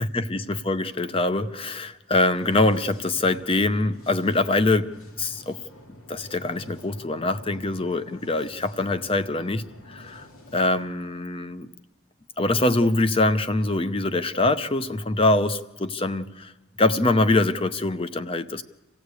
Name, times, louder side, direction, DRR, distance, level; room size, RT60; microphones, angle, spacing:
voice 1, 0.0-4.9 5.2-5.6 6.1-10.3 10.5-11.7 12.4-16.5 16.8-18.6, left 2 dB, 25° left, 12 dB, 0.7 m, -24 dB
sound 1, 2.2-10.9, left 1 dB, 90° left, 2.4 m, -49 dB
27.0 x 16.0 x 8.2 m, 1.2 s
head